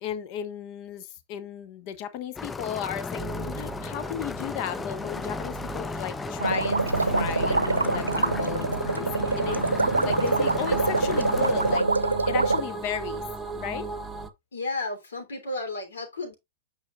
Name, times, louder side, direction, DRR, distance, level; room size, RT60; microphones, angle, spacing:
voice 1, 0.0-9.1 9.4-13.2 13.5-13.9, left 9 dB, 40° left, 1.1 m, -35 dB
sound 1, 2.4-11.8, left 4 dB, 15° left, 0.4 m, -35 dB
sound 2, 3.2-14.3, right 3 dB, 10° right, 1.0 m, -37 dB
sound 3, 6.4-12.6, right 3 dB, 85° right, 0.7 m, -25 dB
voice 2, 14.5-16.3, left 2 dB, 65° left, 3.2 m, -33 dB
8.7 x 5.8 x 2.4 m
figure-of-eight pair, 100°, 0 cm